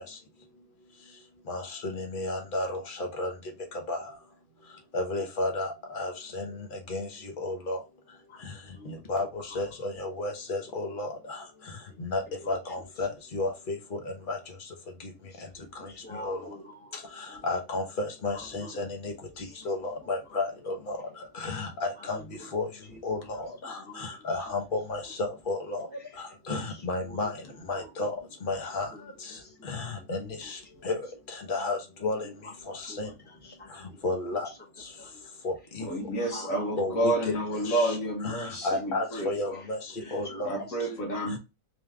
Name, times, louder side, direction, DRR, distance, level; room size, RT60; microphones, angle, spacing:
voice 1, 1.5-3.3 3.9-4.0 4.9-6.5 6.9-7.1 7.4-7.8 8.9-9.3 9.5-11.4 12.0-14.0 14.3-14.4 16.2-16.4 17.4-19.1 19.6-21.0 21.3-22.2 22.5-22.7 23.0-23.2 24.3-25.9 26.5-27.3 27.7-28.1 28.4-28.9 29.7-30.6 30.8-31.0 31.5-32.2 32.7-33.1 34.0-34.5 35.4-35.9 36.8-37.3 37.7-38.0 38.2-39.8 40.1-40.6, left 2 dB, 40° left, 1.1 m, -32 dB
voice 2, 8.3-9.6 11.9-12.0 12.3-12.6 15.3-15.4 15.8-17.0 18.3-18.8 19.4-19.5 22.0-22.5 22.9-23.0 25.0-25.1 27.0-27.3 27.7-27.9 28.9-29.0 29.4-29.7 30.2-30.5 32.2-34.0 34.3-34.4 35.0-35.2 36.3-36.7 40.0-41.4, left 1 dB, 10° left, 1.1 m, -47 dB
voice 3, 35.8-39.6 40.0-41.4, right 1 dB, 75° left, 1.4 m, -30 dB
3.4 x 3.2 x 3.5 m
omnidirectional pair, 1.4 m